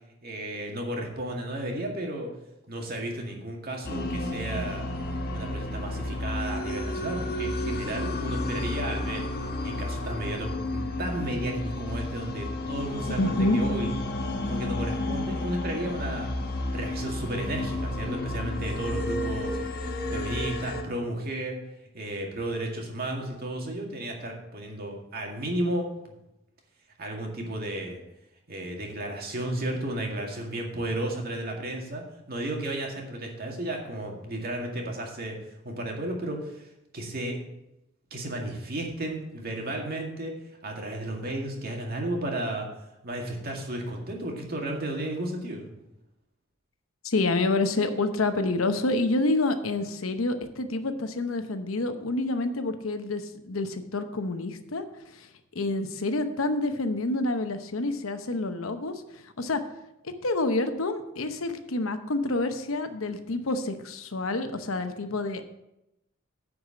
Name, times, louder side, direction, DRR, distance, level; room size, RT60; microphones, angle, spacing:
voice 1, 0.2-2.3 2.7-4.9 5.3-9.2 9.6-13.9 14.4-16.3 16.7-19.6 20.1-21.6 21.9-26.2 27.0-28.0 28.5-35.4 35.6-36.7 36.9-37.4 38.1-40.4 40.6-42.7 43.0-45.7, right 1 dB, 50° right, 1 dB, 2.0 m, -33 dB
sound 1, 3.8-20.8, left 1 dB, 50° left, 1.2 m, -31 dB
voice 2, 13.2-13.6 47.0-54.8 55.1-55.3 55.5-59.6 60.0-65.4, left 2 dB, 85° left, 9 dB, 0.9 m, -28 dB
9.8 x 4.9 x 7.5 m, 0.89 s
head